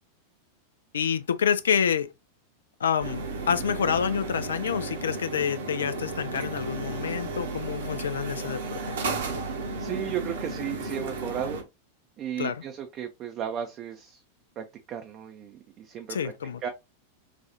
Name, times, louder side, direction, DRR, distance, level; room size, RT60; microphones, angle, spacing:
voice 1, 0.9-2.1 2.8-9.0 12.4-12.6 16.1-16.6, left 7 dB, 65° left, 0.3 m, -28 dB
sound 1, 3.0-11.6, right 3 dB, 60° right, 0.9 m, -33 dB
voice 2, 9.8-11.7 12.2-14.2 14.6-16.3 16.6-16.7, right 9 dB, 35° right, 0.5 m, -34 dB
4.1 x 2.3 x 2.8 m
figure-of-eight pair, 90°, 0 cm